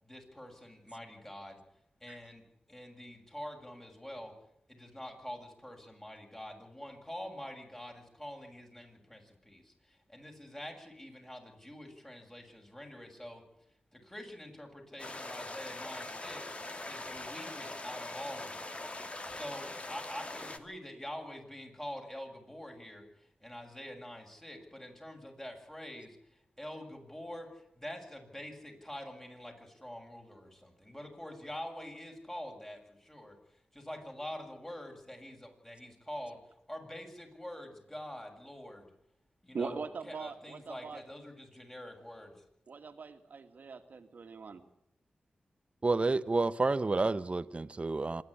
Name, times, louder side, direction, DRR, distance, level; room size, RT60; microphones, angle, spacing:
voice 1, 0.0-1.6 2.0-4.3 4.7-13.4 13.9-18.8 19.3-33.4 33.7-36.4 36.7-38.9 39.4-39.8 40.1-42.4, left 1 dB, 15° left, 7.3 m, -46 dB
sound 1, 15.0-20.6, left 2 dB, 40° left, 2.5 m, -42 dB
voice 2, 39.5-41.0 42.7-44.6, right 5 dB, 70° right, 2.2 m, -41 dB
voice 3, 45.8-48.2, right 3 dB, 40° right, 1.0 m, -30 dB
26.0 x 11.0 x 9.9 m
cardioid pair, 45°, 3 cm